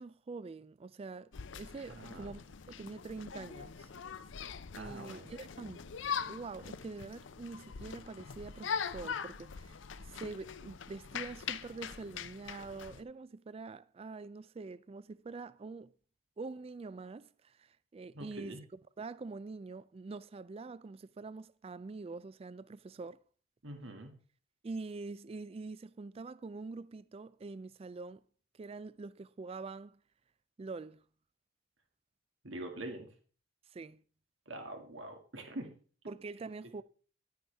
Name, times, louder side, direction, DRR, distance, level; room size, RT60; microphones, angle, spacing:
voice 1, 0.0-2.4 2.7-3.9 4.7-5.9 6.3-9.7 10.0-15.9 16.4-18.6 19.0-23.2 24.6-28.2 28.5-30.0 30.6-31.0 33.7-34.0 36.1-36.8, right 3 dB, 30° right, 0.3 m, -45 dB
sound 1, 1.3-13.0, left 6 dB, 70° left, 0.6 m, -42 dB
voice 2, 1.9-2.3 4.7-5.3 18.1-18.6 23.6-24.1 32.4-33.1 34.5-35.7, right 1 dB, 75° right, 2.1 m, -44 dB
11.0 x 9.4 x 3.4 m
head